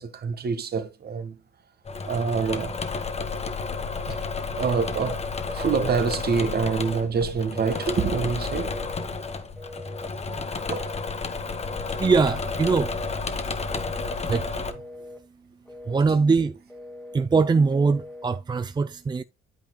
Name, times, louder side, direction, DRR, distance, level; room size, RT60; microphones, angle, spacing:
voice 1, 0.0-1.3 2.0-2.7 4.1-4.2 4.5-8.8 10.3-10.4 10.7-10.9, right 5 dB, 55° right, 1.7 m, -26 dB
Engine / Mechanisms, 1.8-14.7, left 4 dB, 35° left, 1.4 m, -31 dB
Telephone, 5.5-6.0 6.5-7.1 7.5-8.1 8.5-9.1 9.6-10.1 10.6-11.1 11.6-12.2 12.6-13.2 13.6-14.2 14.7-15.2 15.6-16.2 16.7-17.3 17.7-18.3, left 2 dB, 5° left, 2.1 m, -42 dB
voice 2, 12.0-13.0 14.3-14.5 15.9-16.6 17.1-19.2, right 4 dB, 20° right, 0.5 m, -22 dB
9.1 x 8.5 x 2.2 m
cardioid pair, 90°, 20 cm